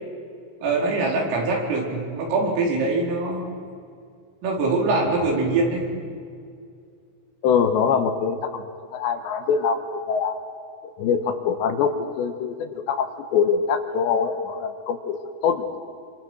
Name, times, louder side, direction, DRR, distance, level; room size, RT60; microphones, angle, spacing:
voice 1, 0.6-3.4 4.4-5.8, right 3 dB, 85° right, -1 dB, 7.0 m, -23 dB
voice 2, 7.4-8.6 8.9-10.4 11.0-15.2 15.4-15.8, left 6 dB, 70° left, 7 dB, 3.2 m, -23 dB
27.5 x 25.5 x 6.4 m, 2.3 s
omnidirectional pair, 5.7 m